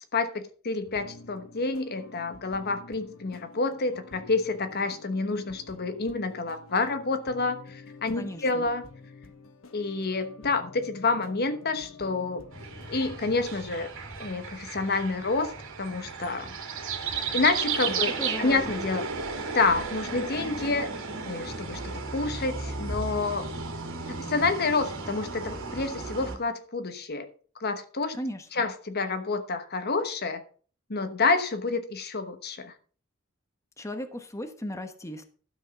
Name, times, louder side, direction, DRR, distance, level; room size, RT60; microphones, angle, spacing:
voice 1, 0.1-8.9 9.7-12.4 12.9-13.9 14.2-15.5 15.8-16.5 17.3-19.1 19.5-20.9 21.2-23.5 24.1-27.3 27.6-28.2 28.6-30.4 30.9-32.7, left 3 dB, 50° left, 1.1 m, -28 dB
sound 1, 0.8-13.5, left 3 dB, 70° left, 1.3 m, -49 dB
voice 2, 8.1-8.7 17.9-18.8 28.1-28.6 33.8-35.2, left 1 dB, 15° left, 1.2 m, -37 dB
sound 2, 12.5-26.4, right 4 dB, 65° right, 2.6 m, -34 dB
12.5 x 6.3 x 5.8 m
head